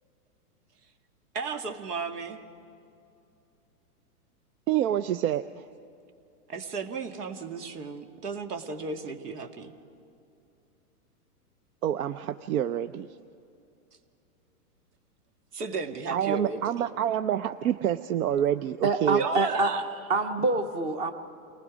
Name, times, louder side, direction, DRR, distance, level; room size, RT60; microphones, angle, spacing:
voice 1, 1.3-2.4 6.5-9.7 15.5-16.7 19.2-19.8, right 4 dB, 90° right, 6 dB, 2.0 m, -34 dB
voice 2, 4.7-5.4 11.8-13.1 16.1-19.2, right 10 dB, 65° right, 10 dB, 0.7 m, -27 dB
voice 3, 18.8-19.7 20.1-21.1, right 3 dB, 15° right, 8 dB, 0.5 m, -26 dB
29.0 x 19.5 x 5.1 m, 2.7 s
hypercardioid pair, 140°, 46 cm